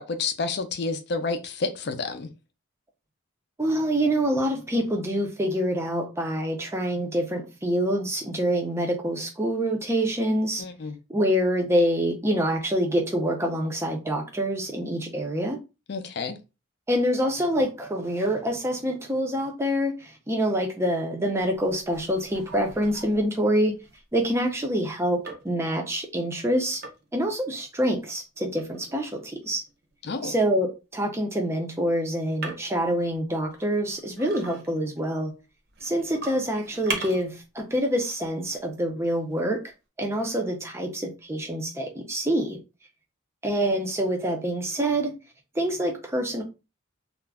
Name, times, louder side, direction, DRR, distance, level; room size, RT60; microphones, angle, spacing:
voice 1, 0.0-2.3 10.6-11.0 15.9-16.4 30.0-30.3, left 4 dB, 50° left, 0.4 m, -30 dB
voice 2, 3.6-10.6 11.1-15.6 16.9-23.8 24.1-26.8 27.1-29.6 30.2-35.3 35.8-39.6 40.0-42.6 43.4-45.1 45.6-46.4, equal, 15° right, 0.4 m, -26 dB
sound 1, 21.4-24.7 25.3-25.9 26.7-27.3 28.3-30.1 32.2-32.9 33.4-35.0 35.7-37.3 37.7-37.8 38.4-38.7 39.1-39.2, right 4 dB, 50° right, 0.7 m, -40 dB
2.4 x 2.0 x 3.4 m
head